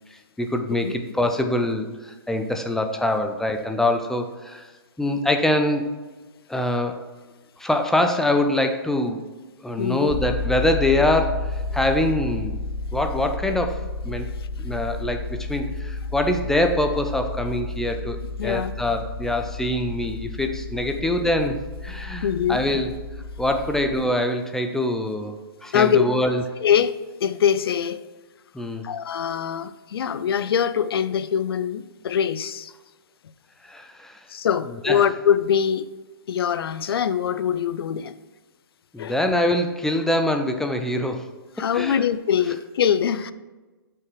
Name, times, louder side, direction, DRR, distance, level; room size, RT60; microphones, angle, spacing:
voice 1, 0.1-4.7 5.0-5.9 6.5-7.0 7.6-9.3 9.6-12.6 12.9-14.3 14.6-18.2 18.4-22.9 23.4-26.4 28.5-28.9 33.6-34.2 34.8-35.0 38.9-41.3 41.6-42.0, left 1 dB, 5° left, 0.4 m, -24 dB
voice 2, 9.8-10.1 18.4-18.7 22.2-22.6 25.7-26.0 26.6-26.9 27.2-28.0 28.8-32.7 34.3-35.9 36.3-38.2 39.0-39.2 41.6-43.3, left 8 dB, 75° left, 0.4 m, -23 dB
sound 1, 10.1-24.0, left 3 dB, 20° left, 0.8 m, -31 dB
5.9 x 4.7 x 4.8 m
hypercardioid pair, 140°, 13 cm